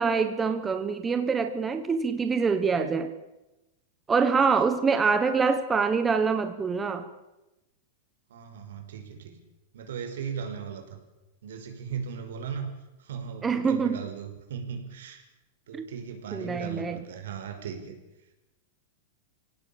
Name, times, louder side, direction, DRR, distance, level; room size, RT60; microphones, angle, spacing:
voice 1, 0.0-3.1 4.1-7.1 13.4-14.0 15.7-15.8 16.3-17.0, right 5 dB, 10° right, 8 dB, 1.2 m, -25 dB
voice 2, 8.3-9.4 9.7-11.0 11.4-12.7 13.0-15.2 15.7-17.9, right 7 dB, 85° right, 5 dB, 5.2 m, -37 dB
25.0 x 17.5 x 8.7 m, 0.96 s
supercardioid pair, 165°, 0 cm